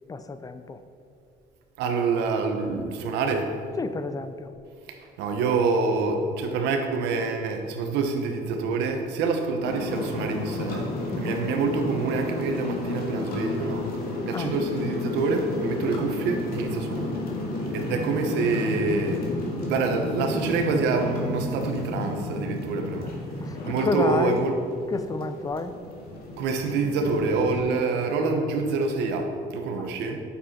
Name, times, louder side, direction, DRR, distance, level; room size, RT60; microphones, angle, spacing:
voice 1, 0.1-0.8 3.8-4.5 11.1-11.4 14.3-14.5 23.4-24.5 24.9-25.7 29.8-29.9, left 4 dB, 20° left, 10 dB, 0.5 m, -30 dB
voice 2, 1.8-3.5 4.9-10.9 11.1-17.2 17.6-19.2 19.6-23.1 23.6-24.5 26.4-30.2, right 4 dB, 90° right, 4 dB, 1.1 m, -26 dB
sound 1, 9.6-27.6, left 2 dB, 65° left, 1.9 m, -32 dB
9.2 x 7.1 x 4.4 m, 2.5 s
cardioid pair, 110°, 17 cm